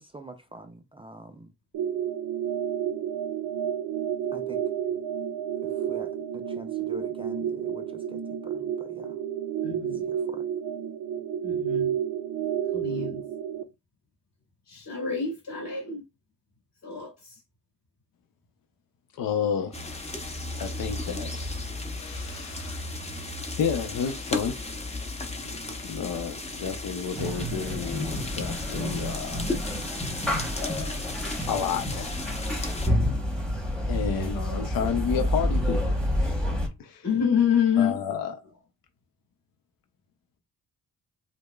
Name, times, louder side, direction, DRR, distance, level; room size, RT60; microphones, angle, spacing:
voice 1, 0.0-1.5 4.3-4.6 5.6-9.1 10.1-10.4, right 2 dB, 15° right, 0.3 m, -45 dB
sound 1, 1.7-13.6, right 9 dB, 80° right, 0.6 m, -30 dB
voice 2, 9.6-10.0 11.4-11.9 12.7-13.2 14.7-16.0 16.8-17.3 37.0-38.0, left 7 dB, 55° left, 2.0 m, -27 dB
voice 3, 19.1-20.0 20.6-21.6 21.9-23.0 23.6-24.6 25.8-29.5 30.6-30.9 31.5-32.1 32.8-33.0 33.9-36.5 36.8-37.1 37.8-38.4, left 7 dB, 85° left, 0.6 m, -31 dB
sound 2, 19.7-32.9, left 2 dB, 20° left, 0.7 m, -35 dB
sound 3, 27.1-36.7, equal, 5° left, 1.0 m, -29 dB
5.0 x 2.0 x 2.2 m
cardioid pair, 110°, 33 cm